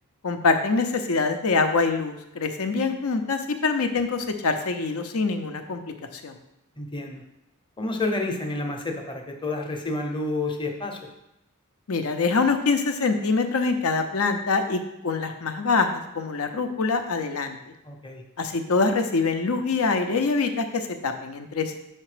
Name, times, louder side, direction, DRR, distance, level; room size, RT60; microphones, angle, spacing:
voice 1, 0.2-6.4 11.9-17.6 18.4-21.8, left 4 dB, 75° left, 7 dB, 0.7 m, -25 dB
voice 2, 6.8-7.2 7.8-11.0 17.8-18.2, left 2 dB, 20° left, 3 dB, 0.8 m, -29 dB
6.6 x 4.4 x 5.0 m, 0.88 s
head